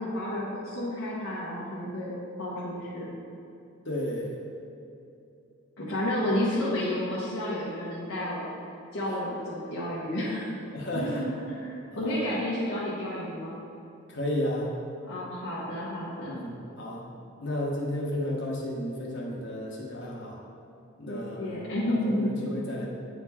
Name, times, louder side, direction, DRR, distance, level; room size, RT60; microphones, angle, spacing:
voice 1, 0.0-2.1 2.4-3.1 5.8-8.5 8.9-10.6 10.9-13.5 15.0-16.3 21.1-22.3, left 1 dB, 90° left, -8 dB, 1.3 m, -31 dB
voice 2, 3.9-4.4 10.7-11.2 11.9-12.1 14.1-14.7 16.2-17.0 17.4-20.4 21.0-21.6 21.9-22.9, left 1 dB, 60° left, -3 dB, 1.2 m, -33 dB
8.7 x 4.5 x 4.2 m, 2.7 s
head